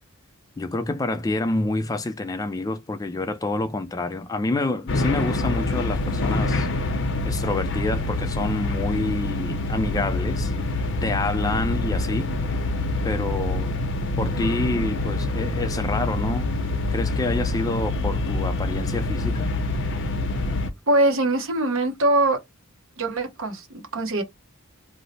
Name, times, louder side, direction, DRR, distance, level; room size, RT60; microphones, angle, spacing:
voice 1, 0.6-12.3 13.0-13.8 14.2-16.5 16.9-19.5, left 2 dB, 15° left, 0.3 m, -28 dB
sound 1, 4.9-20.7, left 2 dB, 55° left, 0.6 m, -26 dB
voice 2, 20.9-22.4 23.0-24.2, right 2 dB, 65° right, 0.9 m, -22 dB
2.8 x 2.0 x 4.0 m
head